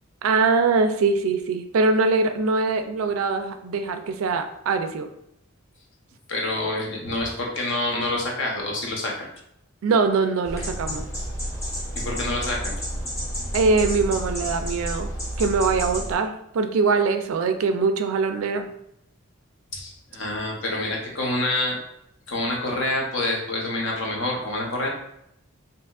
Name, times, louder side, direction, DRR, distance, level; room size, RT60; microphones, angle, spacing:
voice 1, 0.2-5.1 9.8-11.0 13.5-15.1 15.4-18.7, right 4 dB, 75° right, 7 dB, 0.3 m, -22 dB
voice 2, 6.3-9.3 11.9-12.7 19.7-21.8 22.3-24.9, left 2 dB, 55° left, -1 dB, 0.7 m, -27 dB
sound 1, 10.5-16.1, equal, 15° left, 0.6 m, -30 dB
3.5 x 2.7 x 2.3 m, 0.78 s
head